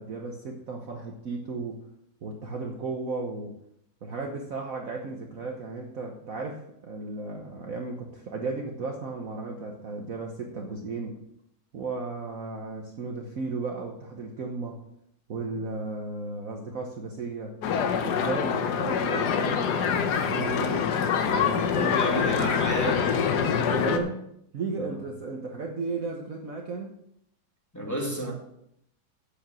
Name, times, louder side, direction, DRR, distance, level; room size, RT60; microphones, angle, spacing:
voice 1, 0.0-1.8 2.2-3.6 4.0-11.2 11.7-14.8 15.3-17.6 18.0-20.9 21.3-23.1 23.6-24.2 24.5-27.0, right 3 dB, 50° right, 1 dB, 1.3 m, -35 dB
sound 1, 17.6-24.0, left 7 dB, 65° left, 1.4 m, -25 dB
voice 2, 21.8-23.0 24.8-25.0 27.7-28.3, right 1 dB, 10° left, -3 dB, 2.1 m, -32 dB
8.7 x 7.7 x 6.1 m, 0.76 s
omnidirectional pair, 2.0 m